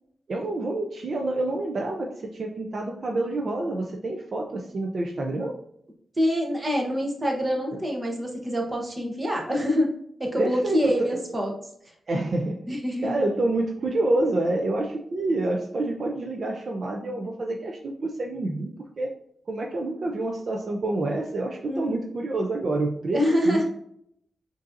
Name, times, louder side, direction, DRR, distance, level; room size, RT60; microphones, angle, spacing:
voice 1, 0.3-5.6 10.4-11.2 12.1-12.7 13.0-18.7 19.0-19.1 19.5-23.6, right 2 dB, 45° right, 1 dB, 0.4 m, -27 dB
voice 2, 6.2-9.9 10.2-11.5 12.7-13.2 21.6-22.0 23.1-23.6, equal, 20° right, 0 dB, 0.9 m, -25 dB
6.5 x 2.6 x 2.5 m, 0.70 s
wide cardioid pair, 165°, 0 cm